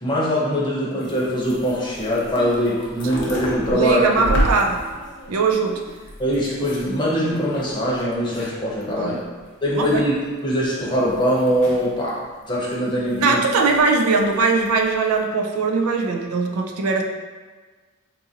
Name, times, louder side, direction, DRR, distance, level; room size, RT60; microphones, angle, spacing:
voice 1, 0.0-4.3 6.2-9.1 9.6-13.4, equal, 20° left, -6 dB, 0.8 m, -22 dB
sound 1, 1.0-7.0 7.3-8.8 9.2-9.3 9.6-10.1 10.4-12.1 12.5-13.2 13.6-14.4 14.7-15.2, equal, 60° left, 0.8 m, -31 dB
voice 2, 3.7-4.8 5.3-5.8 9.0-9.2 9.8-10.0 13.2-17.0, right 4 dB, 85° right, 2 dB, 0.4 m, -20 dB
3.9 x 2.5 x 2.8 m, 1.4 s
head